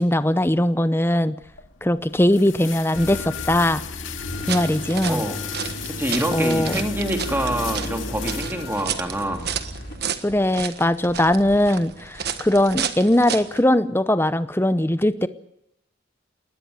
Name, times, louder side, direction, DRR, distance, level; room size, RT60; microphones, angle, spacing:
voice 1, 0.0-1.3 1.8-3.8 4.5-5.2 6.3-6.8 10.2-15.3, left 1 dB, 10° left, 13 dB, 0.7 m, -20 dB
sound 1, 1.4-9.3, left 11 dB, 75° left, 2.2 m, -37 dB
sound 2, 2.9-9.9, left 1 dB, 55° left, 3.7 m, -34 dB
sound 3, 4.3-13.6, right 7 dB, 50° right, 1.4 m, -32 dB
voice 2, 5.1-5.4 5.9-9.5, right 1 dB, 10° right, 4 dB, 2.6 m, -26 dB
20.5 x 19.0 x 8.1 m, 0.80 s
head